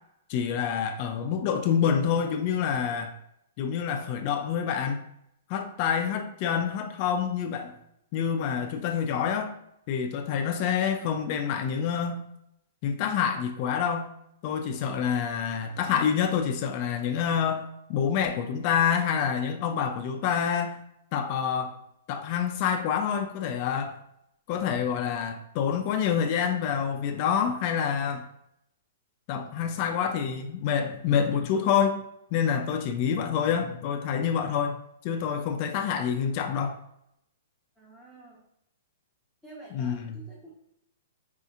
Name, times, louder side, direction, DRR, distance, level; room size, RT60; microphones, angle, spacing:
voice 1, 0.3-3.1 3.6-5.0 5.5-7.8 8.1-9.5 9.9-12.2 12.8-14.1 14.4-20.8 21.1-21.7 22.1-24.0 24.5-28.3 29.3-32.0 32.3-36.8 39.7-40.2, left 7 dB, 40° left, 6 dB, 0.3 m, -27 dB
voice 2, 37.8-38.4 39.4-40.5, right 2 dB, 10° right, -7 dB, 0.8 m, -49 dB
4.2 x 2.7 x 2.4 m, 0.76 s
hypercardioid pair, 145°, 0 cm